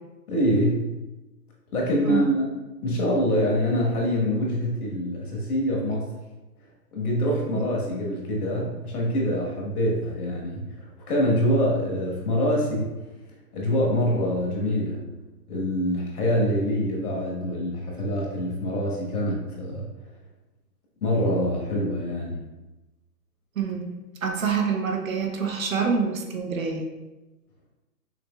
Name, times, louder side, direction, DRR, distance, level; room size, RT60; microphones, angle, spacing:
voice 1, 0.3-0.8 1.7-2.5 2.8-6.1 6.9-12.9 13.5-15.0 15.5-19.8 21.0-22.4, equal, 60° left, -2 dB, 1.3 m, -25 dB
voice 2, 23.6-26.9, right 6 dB, 55° right, 3 dB, 0.6 m, -26 dB
5.9 x 2.6 x 2.2 m, 1.1 s
hypercardioid pair, 170°, 50 cm